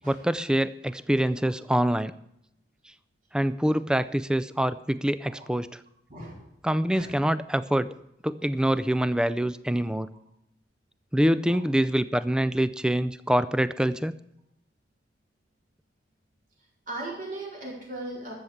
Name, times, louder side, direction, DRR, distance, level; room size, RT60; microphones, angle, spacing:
voice 1, 0.0-2.1 3.3-5.8 6.6-7.9 8.2-10.1 11.1-14.1, right 1 dB, 5° right, 15 dB, 0.4 m, -25 dB
voice 2, 6.1-6.4 6.9-7.1 11.5-11.6 16.9-18.3, right 2 dB, 45° right, -2 dB, 4.6 m, -38 dB
13.5 x 7.3 x 8.0 m, 0.80 s
head